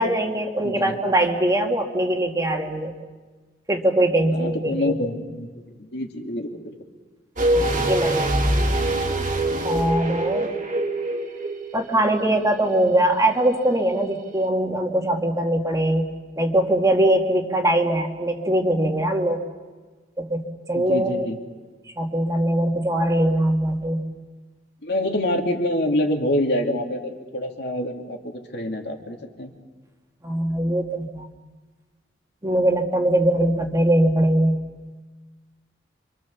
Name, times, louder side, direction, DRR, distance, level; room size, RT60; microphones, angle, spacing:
voice 1, 0.0-2.9 3.7-4.9 7.5-8.7 9.6-10.5 11.7-16.1 16.4-19.4 20.2-21.3 22.0-24.0 30.2-31.3 32.4-34.6, right 1 dB, 20° right, 2 dB, 2.2 m, -22 dB
voice 2, 0.6-1.0 4.3-6.8 20.7-21.4 24.8-29.5, left 1 dB, 65° left, 2 dB, 2.9 m, -26 dB
sound 1, 7.4-12.2 12.5-12.6, right 1 dB, 45° right, 2.5 m, -24 dB
27.5 x 25.5 x 7.2 m, 1.4 s
head